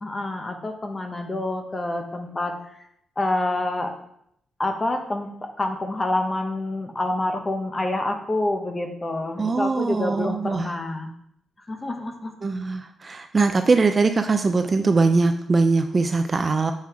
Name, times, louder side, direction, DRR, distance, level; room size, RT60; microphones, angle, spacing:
voice 1, 0.0-2.5 3.2-3.9 4.6-11.1 11.7-12.3, left 2 dB, 20° left, 5 dB, 0.9 m, -27 dB
voice 2, 9.4-10.7 12.4-16.7, right 3 dB, 25° right, 7 dB, 0.4 m, -21 dB
7.5 x 5.6 x 4.8 m, 0.73 s
wide cardioid pair, 175°, 0 cm